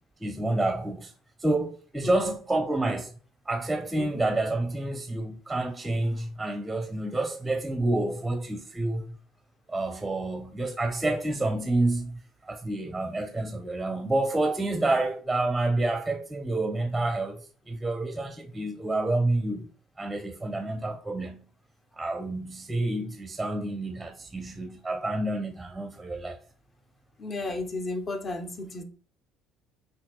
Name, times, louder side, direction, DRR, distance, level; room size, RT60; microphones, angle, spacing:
voice 1, 0.2-1.1 1.4-3.1 3.5-9.2 9.7-21.5 22.0-26.4, right 2 dB, 10° right, 0.6 m, -29 dB
voice 2, 2.0-2.4 3.9-4.3 27.2-28.8, left 2 dB, 35° left, 0.8 m, -34 dB
5.8 x 2.7 x 2.3 m
hypercardioid pair, 65°, 0 cm